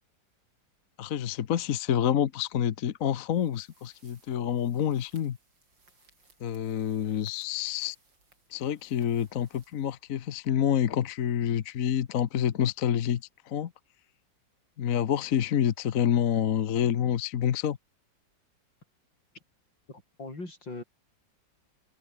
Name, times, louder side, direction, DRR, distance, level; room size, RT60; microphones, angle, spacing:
voice 1, 1.0-5.4 6.4-8.0 8.5-13.7 14.8-17.8, left 9 dB, 55° left, 1.2 m, -28 dB
sound 1, 3.3-10.5, right 3 dB, 80° right, 6.6 m, -64 dB
voice 2, 19.9-20.8, left 2 dB, 85° left, 7.8 m, -40 dB
open air
omnidirectional pair, 2.0 m